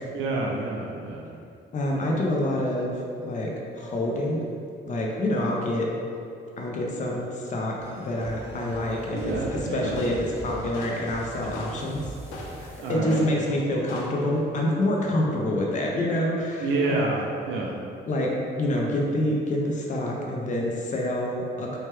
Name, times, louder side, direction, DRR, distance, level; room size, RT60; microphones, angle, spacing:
voice 1, 0.1-1.3 9.1-10.0 12.8-13.2 16.6-17.8, right 2 dB, 80° right, -1 dB, 0.4 m, -28 dB
voice 2, 1.7-2.9 3.2-4.4 4.8-5.9 6.6-12.0 12.9-17.0 18.1-21.8, left 1 dB, 40° left, -2 dB, 0.5 m, -27 dB
sound 1, 7.8-12.9, right 1 dB, 15° right, 0.7 m, -41 dB
sound 2, 9.3-14.4, left 1 dB, 85° left, 0.5 m, -42 dB
2.8 x 2.2 x 3.2 m, 2.5 s
cardioid pair, 90°, 20 cm